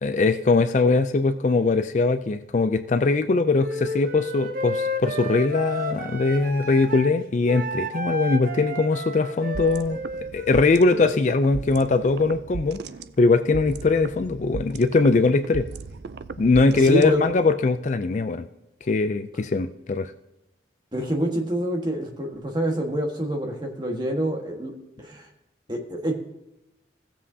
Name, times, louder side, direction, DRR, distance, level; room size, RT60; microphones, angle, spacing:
voice 1, 0.0-10.0 10.3-12.8 13.2-15.7 16.4-18.5 18.8-20.1, left 3 dB, 40° left, 10 dB, 0.4 m, -21 dB
Wind instrument woodwind instrument, 3.6-7.1 7.5-11.2, left 1 dB, 45° right, 0.9 m, -32 dB
sound 1, 9.5-17.5, right 5 dB, 65° right, 0.4 m, -37 dB
voice 2, 16.7-17.2 20.9-24.7 25.0-25.3 25.7-26.2, right 1 dB, 25° right, 1 dB, 1.5 m, -26 dB
16.0 x 7.4 x 2.8 m, 0.95 s
head